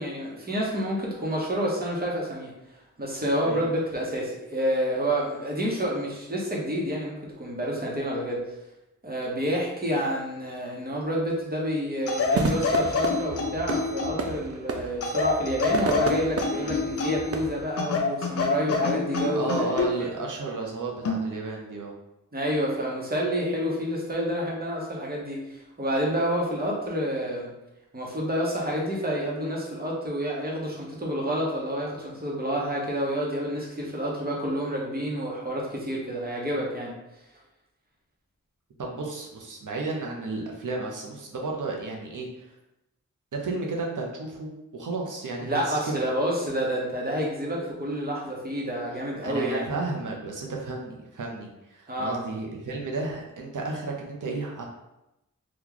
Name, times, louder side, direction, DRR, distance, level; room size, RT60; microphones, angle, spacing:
voice 1, 0.0-2.5 3.0-8.4 9.0-20.1 22.3-27.5 27.9-37.0 45.4-49.7 51.9-52.3, equal, 30° right, -3 dB, 1.0 m, -29 dB
sound 1, 12.1-14.3 15.0-17.4 17.8-20.0 21.0-21.3, left 4 dB, 50° left, 0.5 m, -27 dB
sound 2, 12.3-17.7, right 4 dB, 50° right, 0.4 m, -32 dB
voice 2, 19.3-21.9 38.8-42.5 43.3-45.9 49.2-54.7, right 3 dB, 80° right, -1 dB, 0.8 m, -33 dB
3.0 x 2.4 x 3.8 m, 0.93 s
wide cardioid pair, 70°, 31 cm